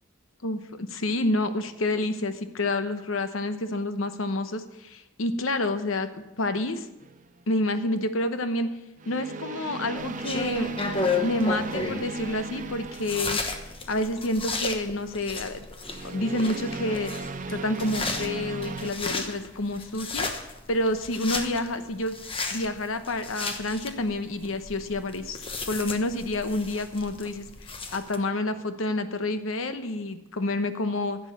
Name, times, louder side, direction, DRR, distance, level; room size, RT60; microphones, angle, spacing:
voice 1, 0.4-6.9 7.5-8.7 9.1-10.7 11.2-13.4 13.9-15.7 16.0-17.1 17.5-20.3 20.7-22.2 22.5-31.2, left 2 dB, 90° left, 10 dB, 0.9 m, -28 dB
sound 1, 7.0-7.4 9.0-14.1 15.8-18.9, right 3 dB, 40° right, 0.6 m, -37 dB
sound 2, 10.0-28.2, left 3 dB, 30° left, 1.1 m, -34 dB
11.0 x 7.9 x 7.3 m, 0.97 s
head